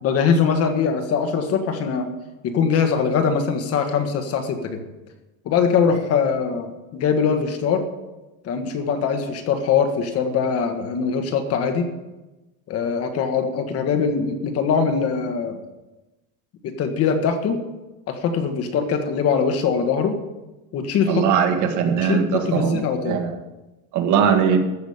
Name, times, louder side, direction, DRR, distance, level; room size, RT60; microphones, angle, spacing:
voice 1, 0.0-2.1 2.4-4.8 5.4-7.8 8.4-11.9 12.7-15.6 16.6-17.6 18.1-20.2 20.7-21.2 22.0-23.2, left 6 dB, 35° left, 6 dB, 1.6 m, -22 dB
voice 2, 21.1-23.4 23.9-24.6, right 7 dB, 45° right, 4 dB, 2.0 m, -20 dB
14.0 x 6.3 x 8.6 m, 1.1 s
supercardioid pair, 150°, 40 cm